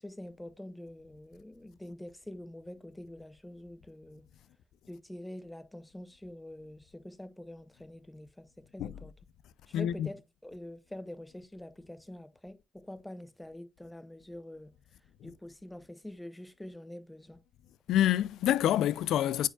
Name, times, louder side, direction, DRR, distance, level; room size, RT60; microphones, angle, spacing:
voice 1, 0.0-4.2 4.9-9.1 9.7-14.7 15.2-17.4, left 1 dB, 10° left, 0.7 m, -46 dB
voice 2, 9.7-10.1 15.2-15.3 17.9-19.5, left 12 dB, 80° left, 0.3 m, -27 dB
8.9 x 4.6 x 2.3 m
cardioid pair, 90°, 0 cm